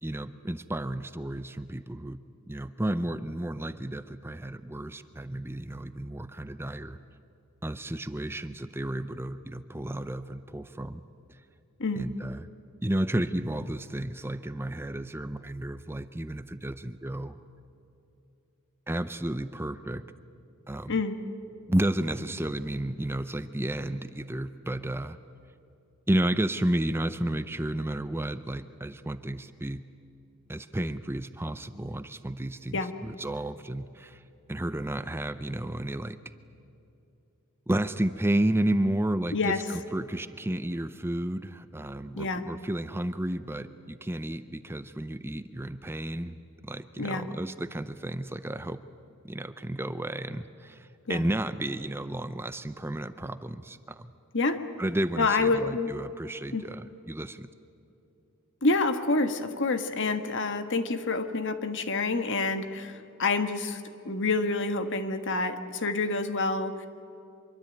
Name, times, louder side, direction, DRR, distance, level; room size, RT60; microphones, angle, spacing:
voice 1, 0.0-2.2 2.5-7.0 7.6-11.0 11.3-11.4 12.0-12.5 12.8-17.4 18.9-20.0 20.7-21.0 21.7-25.2 26.1-29.8 30.5-34.2 34.5-36.2 37.7-46.4 46.6-48.8 49.2-54.1 54.8-57.5, right 1 dB, 10° right, 11 dB, 0.6 m, -32 dB
voice 2, 39.3-39.6 42.2-42.4 47.0-47.3 51.1-51.2 54.3-54.6 55.2-55.9 56.5-56.6 58.6-66.9, left 3 dB, 55° left, 8 dB, 1.6 m, -28 dB
25.0 x 23.5 x 9.1 m, 2.7 s
head